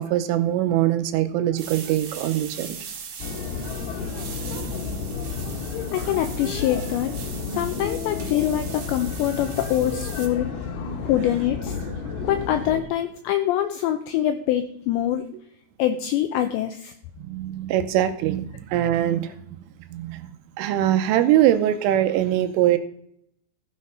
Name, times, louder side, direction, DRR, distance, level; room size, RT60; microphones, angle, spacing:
voice 1, 0.0-2.8 4.5-4.7 17.2-19.3 19.9-22.8, right 12 dB, 85° right, 3.2 m, -22 dB
sound 1, 1.6-10.3, right 6 dB, 55° right, 2.3 m, -40 dB
sound 2, 3.2-12.8, left 5 dB, 70° left, 2.6 m, -31 dB
voice 2, 5.9-7.1 7.5-10.5 11.0-11.8 12.3-15.3 15.8-16.9, left 11 dB, 90° left, 2.5 m, -24 dB
15.0 x 6.5 x 5.4 m
omnidirectional pair, 5.9 m